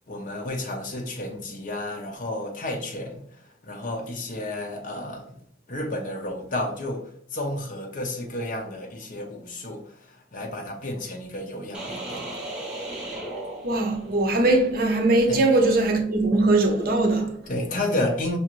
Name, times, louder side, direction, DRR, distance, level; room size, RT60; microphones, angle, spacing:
voice 1, 0.1-5.3 5.7-12.3 15.3-15.6 17.5-18.4, left 1 dB, 45° left, 0.7 m, -31 dB
sound 1, 11.7-14.4, right 1 dB, 5° right, 0.8 m, -35 dB
voice 2, 13.6-17.3, right 2 dB, 55° right, 0.7 m, -21 dB
5.6 x 2.4 x 3.0 m
head